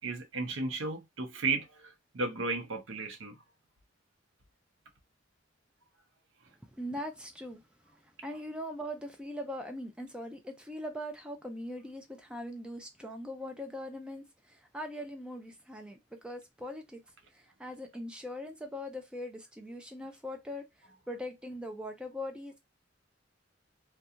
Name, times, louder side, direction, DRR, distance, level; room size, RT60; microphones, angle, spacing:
voice 1, 0.0-3.4, right 3 dB, 80° right, 0.7 m, -34 dB
voice 2, 6.7-17.0 17.3-22.6, left 1 dB, 5° right, 0.3 m, -41 dB
2.7 x 2.2 x 2.4 m
head